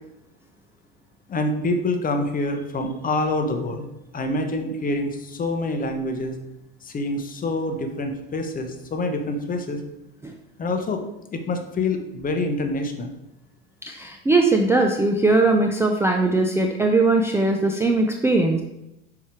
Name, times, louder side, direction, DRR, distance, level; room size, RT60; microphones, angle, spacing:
voice 1, 1.3-6.3 6.8-9.8 10.6-11.0 11.3-13.1, left 2 dB, 25° left, 6 dB, 1.1 m, -26 dB
voice 2, 13.8-18.6, right 2 dB, 10° right, 3 dB, 0.5 m, -20 dB
5.5 x 4.9 x 4.6 m, 0.88 s
hypercardioid pair, 95°, 32 cm